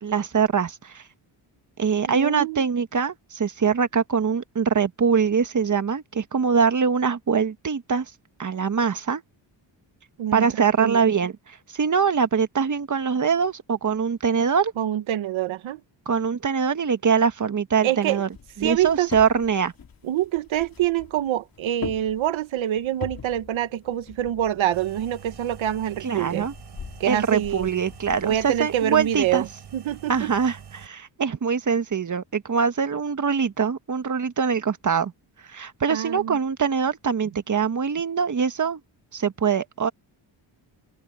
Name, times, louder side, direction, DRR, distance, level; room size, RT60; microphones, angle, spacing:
voice 1, 0.0-1.0 1.8-8.0 8.4-9.2 10.3-14.7 16.0-18.3 18.6-19.7 26.0-26.5 27.0-29.4 30.1-35.1 35.5-38.8 39.1-39.9, right 6 dB, 40° right, 1.6 m, -23 dB
voice 2, 2.1-2.6 10.2-11.0 14.8-15.8 17.8-18.2 18.6-19.1 20.0-26.5 27.0-27.7 28.2-29.5 29.7-30.3 35.9-36.4, right 12 dB, 80° right, 1.4 m, -26 dB
sound 1, 18.1-28.5, left 6 dB, 45° left, 3.3 m, -43 dB
sound 2, 24.7-30.9, right 7 dB, 60° right, 7.2 m, -45 dB
open air
cardioid pair, 85°, 46 cm